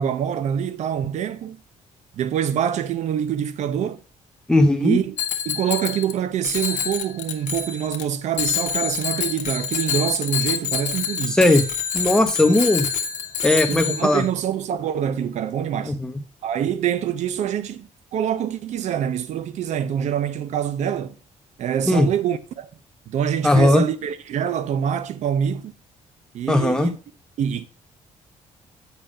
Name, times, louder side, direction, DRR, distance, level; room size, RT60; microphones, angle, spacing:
voice 1, 0.0-1.6 2.2-4.0 4.8-5.2 5.5-11.4 13.7-15.9 16.4-21.2 21.6-22.7 23.1-25.7 26.3-27.0 27.4-27.7, right 9 dB, 70° right, 0.8 m, -25 dB
voice 2, 4.5-5.0 11.3-11.6 11.9-12.9 13.4-14.2 15.9-16.1 21.9-22.1 23.4-23.8 26.5-26.9, left 1 dB, 5° left, 1.0 m, -17 dB
Bicycle bell, 5.2-6.1 6.4-8.0 8.3-14.3, left 7 dB, 85° left, 1.2 m, -27 dB
8.2 x 5.9 x 5.0 m
cardioid pair, 160°, 13 cm